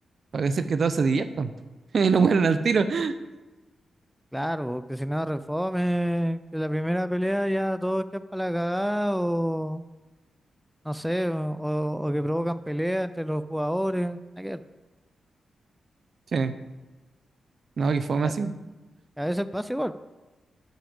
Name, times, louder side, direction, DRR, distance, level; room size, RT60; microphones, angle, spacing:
voice 1, 0.3-1.5 1.9-3.1 16.3-16.5 17.8-18.5, right 5 dB, 60° right, 12 dB, 0.6 m, -23 dB
voice 2, 4.3-9.8 10.8-14.6 18.2-18.3 19.2-19.9, equal, ahead, 13 dB, 0.4 m, -28 dB
9.2 x 4.9 x 7.0 m, 1.1 s
cardioid pair, 65°, 0 cm